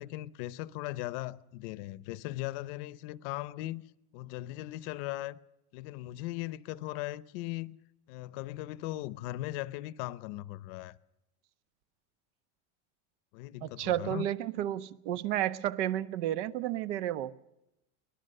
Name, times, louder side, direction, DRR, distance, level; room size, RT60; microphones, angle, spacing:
voice 1, 0.0-3.8 4.1-5.4 5.7-7.8 8.1-10.9 13.3-14.3, left 16 dB, 55° left, 0.7 m, -38 dB
voice 2, 13.6-17.3, right 12 dB, 85° right, 1.1 m, -32 dB
23.5 x 18.5 x 6.6 m
cardioid pair, 180°, 34 cm